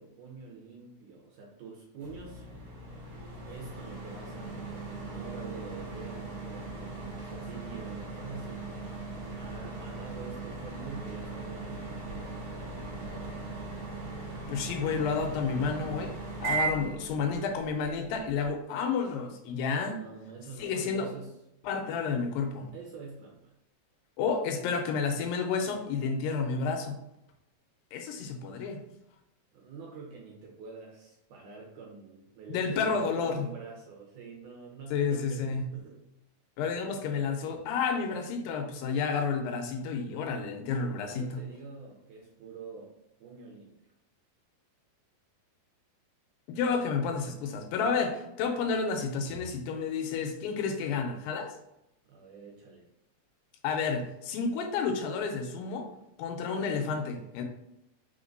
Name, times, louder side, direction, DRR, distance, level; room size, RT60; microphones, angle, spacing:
voice 1, 0.0-2.5 3.5-13.4 16.7-17.6 19.9-21.4 22.7-23.5 29.5-35.5 35.7-36.1 41.0-42.9 43.2-43.7 52.0-52.9, right 4 dB, 75° right, -1 dB, 2.0 m, -46 dB
sound 1, 2.0-18.5, right 3 dB, 60° right, 1.8 m, -39 dB
voice 2, 14.5-16.1 16.4-20.0 20.6-21.1 21.6-22.7 24.2-27.0 27.9-28.8 32.5-33.5 34.9-35.7 36.6-41.4 46.5-51.6 53.6-55.9 56.2-57.4, left 5 dB, 85° left, 4 dB, 2.3 m, -30 dB
5.1 x 3.6 x 2.5 m, 0.84 s
omnidirectional pair, 4.1 m